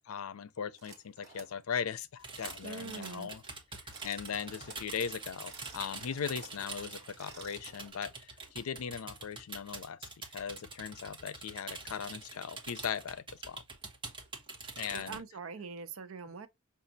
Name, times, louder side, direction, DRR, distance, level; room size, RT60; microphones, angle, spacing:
voice 1, 0.0-3.4 4.0-13.6 14.8-15.2, left 7 dB, 90° left, 0.5 m, -39 dB
sound 1, 0.8-1.6 2.3-3.2 3.8-4.9 5.3-6.6 7.0-7.9, right 4 dB, 50° right, 1.2 m, -54 dB
sound 2, 2.2-15.2, right 3 dB, 25° right, 1.1 m, -45 dB
voice 2, 2.6-3.3 14.9-16.5, right 5 dB, 70° right, 0.6 m, -43 dB
5.9 x 2.4 x 2.6 m
head